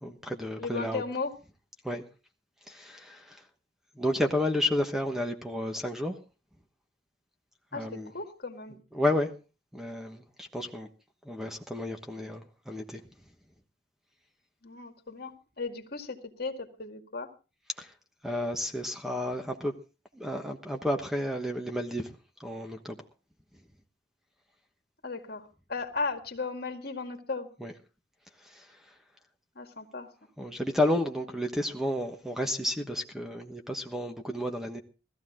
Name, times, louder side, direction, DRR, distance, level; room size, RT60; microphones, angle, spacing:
voice 1, 0.0-1.0 1.8-2.0 2.7-3.4 3.9-6.2 7.7-8.1 8.9-9.3 9.7-10.9 11.2-13.0 17.8-17.9 18.2-19.7 20.1-23.0 27.6-27.7 28.4-28.9 30.4-34.8, left 1 dB, ahead, 1.2 m, -31 dB
voice 2, 0.6-1.3 7.7-8.8 14.6-17.3 25.0-27.5 29.6-30.1, left 4 dB, 55° left, 2.1 m, -36 dB
18.0 x 14.0 x 3.7 m
head